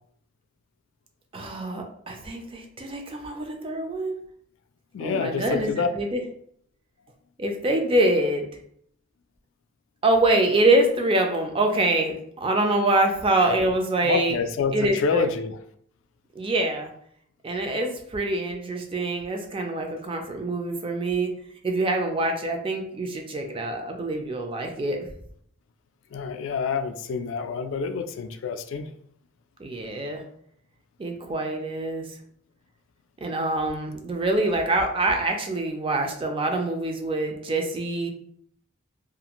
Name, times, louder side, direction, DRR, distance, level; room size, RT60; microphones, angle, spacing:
voice 1, 1.3-4.1 5.0-6.2 7.4-8.4 10.0-14.4 14.7-15.3 16.4-16.9 17.4-21.3 21.6-25.0 29.6-30.2 31.0-32.1 33.2-38.1, right 2 dB, 25° right, 3 dB, 0.4 m, -25 dB
voice 2, 4.9-5.9 14.0-15.6 26.1-28.9, left 5 dB, 65° left, 8 dB, 0.3 m, -27 dB
2.5 x 2.4 x 2.9 m, 0.66 s
head